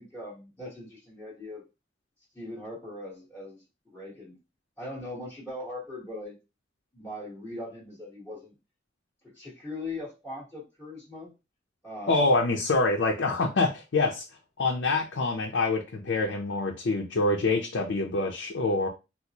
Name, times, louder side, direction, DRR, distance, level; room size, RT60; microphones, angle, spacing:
voice 1, 0.0-1.6 2.3-4.4 4.8-6.4 6.9-8.5 9.2-11.3 11.8-12.4, left 1 dB, 5° left, -10 dB, 1.4 m, -40 dB
voice 2, 12.1-14.2 14.6-18.9, left 3 dB, 85° left, 0 dB, 0.6 m, -26 dB
4.2 x 2.0 x 2.9 m, 0.27 s
head